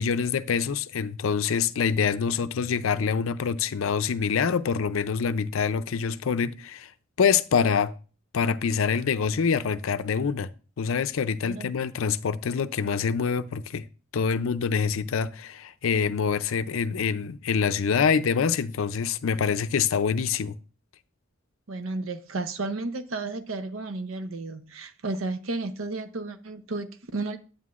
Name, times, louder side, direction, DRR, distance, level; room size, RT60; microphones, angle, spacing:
voice 1, 0.0-6.9 7.2-7.9 8.3-10.5 10.8-13.9 14.1-20.6, left 6 dB, 70° left, 0.5 m, -25 dB
voice 2, 21.7-27.4, right 3 dB, 70° right, 0.7 m, -33 dB
9.3 x 8.8 x 2.4 m
head